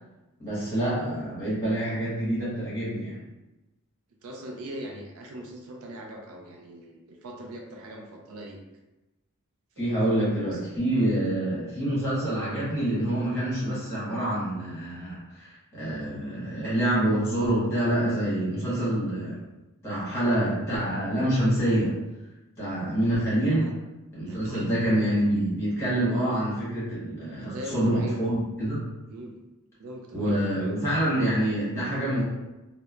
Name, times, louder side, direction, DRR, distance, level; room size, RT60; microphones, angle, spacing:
voice 1, 0.4-3.2 9.8-19.4 19.8-21.9 22.6-23.7 24.1-28.8 30.1-32.2, right 1 dB, 10° left, -9 dB, 1.2 m, -26 dB
voice 2, 4.2-8.6 9.8-11.1 23.5-23.7 24.3-24.7 27.4-28.2 29.1-29.4 29.8-30.7, right 1 dB, 70° right, 1 dB, 0.4 m, -41 dB
3.0 x 2.0 x 2.4 m, 1.0 s
head